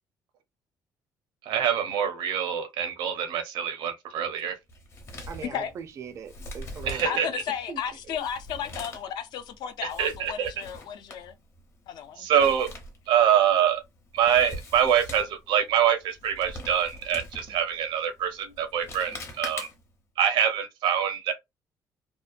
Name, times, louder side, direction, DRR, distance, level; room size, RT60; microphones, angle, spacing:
voice 1, 1.5-4.6 6.8-7.3 10.0-10.5 12.2-12.7 13.1-13.8 14.1-19.7 20.2-21.3, right 9 dB, 90° right, 0.7 m, -25 dB
Male speech man speaking, 4.7-20.0, left 1 dB, 35° left, 0.7 m, -43 dB
voice 2, 5.3-7.2 7.7-7.8 8.1-8.2, right 7 dB, 40° right, 0.4 m, -40 dB
voice 3, 7.0-11.3 11.9-12.3, left 8 dB, 70° left, 0.5 m, -34 dB
2.7 x 2.1 x 2.4 m
cardioid pair, 160°, 8 cm